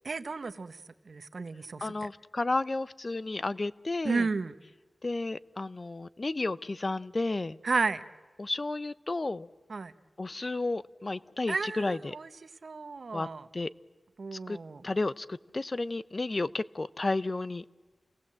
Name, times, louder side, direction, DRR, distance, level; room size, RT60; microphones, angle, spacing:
voice 1, 0.0-0.8 1.1-2.1 4.0-4.5 7.6-8.0 9.7-9.9 11.5-13.5 14.2-14.8, right 4 dB, 70° right, 1.0 m, -33 dB
voice 2, 1.8-4.3 5.0-7.6 8.4-9.5 10.2-12.1 13.1-13.3 13.5-13.7 14.3-14.6 14.8-17.7, left 2 dB, 45° left, 0.6 m, -32 dB
28.5 x 18.5 x 7.6 m
cardioid pair, 50°, 0 cm